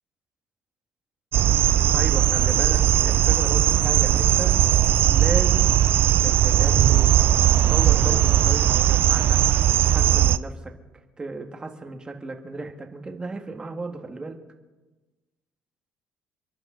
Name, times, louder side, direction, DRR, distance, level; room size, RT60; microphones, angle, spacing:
sound 1, 1.3-10.4, right 11 dB, 50° right, 0.4 m, -19 dB
voice 1, 1.9-4.5 5.1-5.8 6.2-7.1 7.7-9.4 9.8-10.7 11.2-14.4, right 3 dB, 20° right, 4 dB, 1.7 m, -34 dB
29.5 x 11.0 x 3.9 m, 1.2 s
cardioid pair, 145°, 5 cm